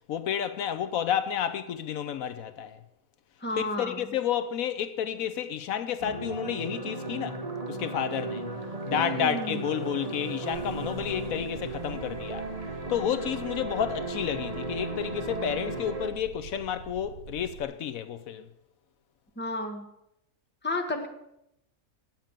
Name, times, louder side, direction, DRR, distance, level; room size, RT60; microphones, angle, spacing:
voice 1, 0.1-2.8 3.6-7.4 7.7-8.4 8.9-12.5 12.9-18.5, left 9 dB, 75° left, 1.1 m, -31 dB
voice 2, 3.4-4.1 8.9-9.6 19.4-19.9 20.6-21.1, left 1 dB, 10° left, 1.1 m, -32 dB
sound 1, 6.0-16.1, right 2 dB, 25° right, 1.4 m, -35 dB
sound 2, 10.5-17.6, right 6 dB, 85° right, 1.1 m, -45 dB
8.9 x 7.5 x 8.9 m
omnidirectional pair, 1.5 m